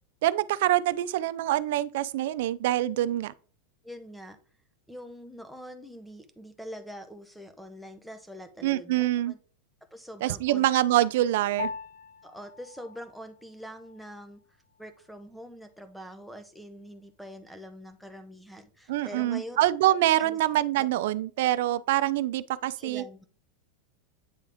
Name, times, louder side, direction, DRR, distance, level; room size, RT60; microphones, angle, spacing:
voice 1, 0.2-3.3 8.6-9.3 10.2-11.7 18.9-23.0, right 14 dB, 70° right, 0.4 m, -25 dB
voice 2, 3.8-4.4 4.9-9.4 9.9-10.7 11.0-11.1 12.2-14.4 14.8-19.6 19.9-20.4 20.8-20.9 22.8-23.2, equal, ahead, 0.8 m, -44 dB
Piano, 11.6-21.2, left 5 dB, 55° left, 1.0 m, -46 dB
9.0 x 3.6 x 3.5 m
supercardioid pair, 150°, 0 cm